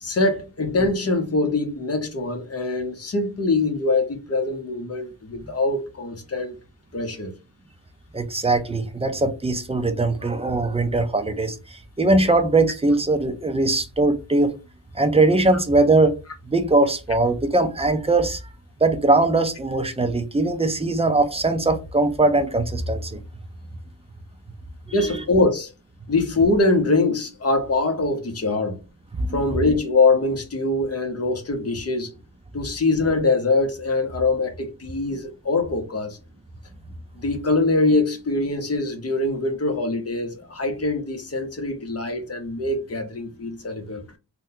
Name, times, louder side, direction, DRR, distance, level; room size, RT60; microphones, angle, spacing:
voice 1, 0.0-6.6 6.9-7.4 24.9-25.7 26.1-28.8 29.3-32.1 32.5-36.2 37.2-44.2, left 3 dB, 35° left, 0.7 m, -23 dB
voice 2, 8.1-14.5 14.9-16.2 16.4-18.4 18.8-23.2 24.9-25.2 29.2-29.4, right 2 dB, 15° right, 0.3 m, -21 dB
2.6 x 2.2 x 3.7 m
wide cardioid pair, 130°, 45 cm